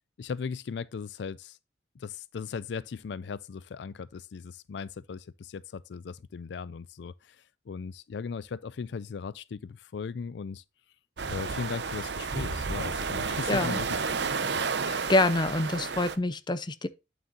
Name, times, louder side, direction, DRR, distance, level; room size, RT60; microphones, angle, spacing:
voice 1, 0.2-1.6 2.0-10.6 11.3-13.9, left 5 dB, 70° left, 0.4 m, -38 dB
sound 1, 11.2-16.2, right 5 dB, 70° right, 0.8 m, -31 dB
voice 2, 13.5-13.8 14.8-16.9, left 2 dB, 25° left, 0.7 m, -26 dB
8.9 x 7.4 x 2.7 m
head